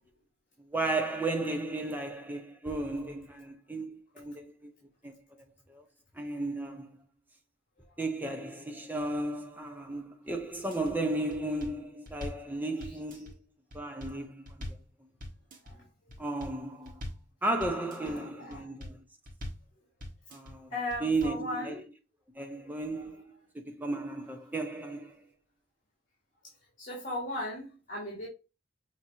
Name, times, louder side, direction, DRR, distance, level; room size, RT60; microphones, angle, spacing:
voice 1, 0.6-4.7 5.0-5.8 6.1-6.9 8.0-13.4 13.7-14.7 16.2-16.9 17.4-19.0 20.3-20.7 21.0-21.8 22.3-23.2 23.5-25.2, right 2 dB, 10° right, 0.7 m, -34 dB
sound 1, 10.5-10.9 11.3-12.5 12.8-13.3 13.7-14.9 15.2-15.7 16.1-16.6 16.8-17.3 17.6-18.1 18.5-19.0 19.2-19.7 20.0-20.5 20.9-21.4, left 1 dB, 45° right, 1.3 m, -42 dB
voice 2, 18.0-18.7 20.7-21.8 22.6-23.0 26.8-28.3, left 1 dB, 45° left, 1.7 m, -38 dB
5.8 x 3.0 x 2.7 m
head